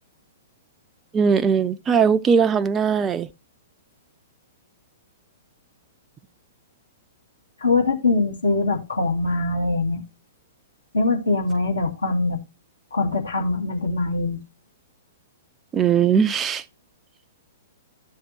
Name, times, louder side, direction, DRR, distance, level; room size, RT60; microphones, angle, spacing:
voice 1, 1.1-3.3 15.7-16.6, right 6 dB, 20° right, 0.5 m, -19 dB
voice 2, 7.6-10.0 10.9-12.4 12.9-14.4, left 3 dB, 70° left, 2.4 m, -22 dB
13.5 x 6.6 x 2.9 m
figure-of-eight pair, 110°, 0 cm